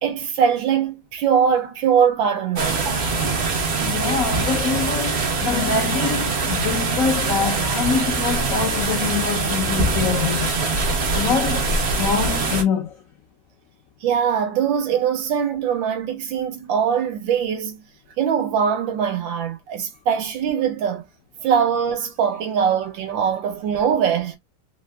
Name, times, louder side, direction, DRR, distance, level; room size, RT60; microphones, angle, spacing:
voice 1, 0.0-3.1 14.0-17.8 18.2-21.0 21.4-24.4, right 7 dB, 80° right, 1.6 m, -22 dB
sound 1, 2.6-12.6, right 3 dB, 55° right, 0.7 m, -23 dB
voice 2, 3.8-10.5 11.1-13.0, left 6 dB, 65° left, 0.8 m, -25 dB
3.6 x 2.5 x 2.2 m
omnidirectional pair, 2.1 m